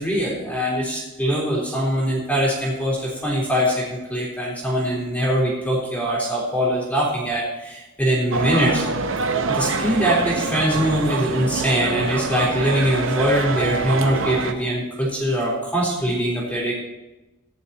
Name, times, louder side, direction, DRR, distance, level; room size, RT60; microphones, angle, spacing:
voice 1, 0.0-8.9 9.5-16.7, equal, 5° left, -5 dB, 3.9 m, -22 dB
sound 1, 8.3-14.5, right 3 dB, 60° right, 0.8 m, -25 dB
17.5 x 11.0 x 3.0 m, 1.1 s
head